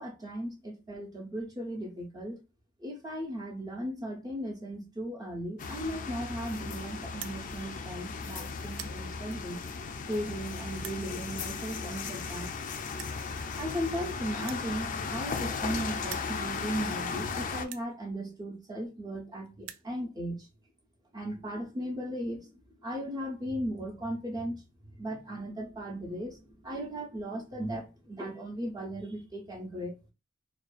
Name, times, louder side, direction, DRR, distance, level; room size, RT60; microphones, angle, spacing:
voice 1, 0.0-2.4 2.8-9.6 10.1-12.5 13.6-20.5 21.1-22.5 22.8-24.6 25.0-29.9, equal, 20° right, 0.5 m, -37 dB
sound 1, 5.6-17.7, left 5 dB, 40° left, 0.3 m, -36 dB
sound 2, 7.1-7.4 8.1-8.3 8.6-9.0 9.7-9.8 10.7-11.0 12.1-12.2 12.4-12.5 12.9-13.2 14.4-15.7 16.0-16.3 17.0-17.1 17.6-17.9 18.8-18.9 19.1-19.2 19.5-19.9, right 11 dB, 85° right, 0.3 m, -44 dB
2.4 x 2.1 x 2.3 m
head